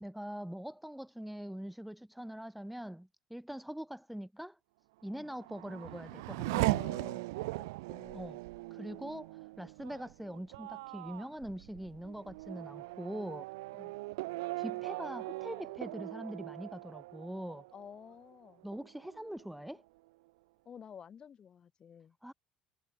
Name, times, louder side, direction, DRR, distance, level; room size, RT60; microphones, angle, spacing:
voice 1, 0.0-4.6 5.0-6.9 8.1-8.4 8.7-13.5 14.6-17.7 18.6-19.8 22.2-22.3, equal, 5° right, 0.8 m, -43 dB
Race car auto racing / Accelerating revving vroom, 5.1-18.3 18.7-19.4, right 22 dB, 85° right, 0.4 m, -39 dB
voice 2, 6.6-8.4 13.7-14.0 17.7-18.6 20.6-22.2, left 7 dB, 40° left, 1.3 m, -52 dB
hypercardioid pair, 70°, 2 cm